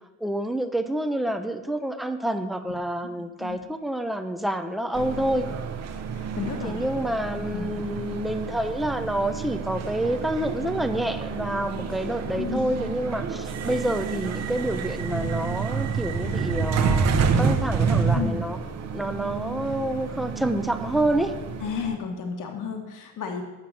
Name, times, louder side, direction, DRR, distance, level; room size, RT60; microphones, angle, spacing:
voice 1, 0.2-5.5 6.6-17.1 17.4-18.6 18.9-21.3, right 1 dB, ahead, 8 dB, 0.4 m, -28 dB
voice 2, 3.2-3.6 6.1-6.8 7.5-7.7 12.4-12.7 18.1-18.4 21.6-23.4, left 6 dB, 75° left, 3 dB, 1.3 m, -32 dB
sound 1, 4.9-22.0, right 5 dB, 55° right, 0.8 m, -29 dB
8.7 x 6.2 x 7.3 m, 1.2 s
cardioid pair, 180°, 32 cm